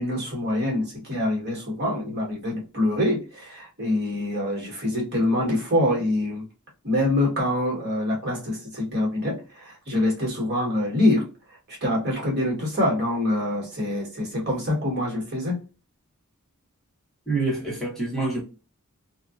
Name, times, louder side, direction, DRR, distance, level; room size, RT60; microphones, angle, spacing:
voice 1, 0.0-6.4 6.8-11.3 11.7-15.6, left 1 dB, 50° right, 1.3 m, -25 dB
voice 2, 17.3-18.4, right 3 dB, ahead, 1.1 m, -26 dB
2.6 x 2.4 x 2.4 m
head